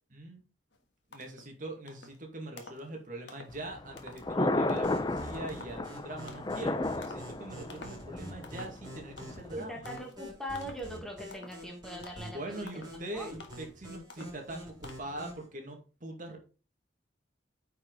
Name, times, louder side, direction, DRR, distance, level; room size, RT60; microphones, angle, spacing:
voice 1, 0.1-0.4 1.1-9.7 12.3-16.4, right 1 dB, 45° right, 2 dB, 2.1 m, -42 dB
sound 1, 0.7-0.8 1.1-1.5 1.9-2.2 2.6-2.9 3.3-3.6 4.0-4.3 4.7-5.0 5.5-5.8 6.3-6.6 7.0-7.3 7.7-8.1 8.4-8.8 9.2-9.5 9.9-10.2 10.6-10.9 11.3-11.6 12.0-12.3 12.7-13.0 13.4-13.7 14.1-14.4 14.8-15.0, left 3 dB, 65° left, 1.5 m, -50 dB
Thunder, 3.5-9.5, left 2 dB, 20° left, 0.5 m, -34 dB
sound 2, 4.8-15.5, equal, 20° right, 4.9 m, -47 dB
voice 2, 9.5-12.6 13.1-13.3, equal, 5° left, 1 dB, 1.6 m, -41 dB
9.3 x 5.0 x 4.0 m, 0.34 s
head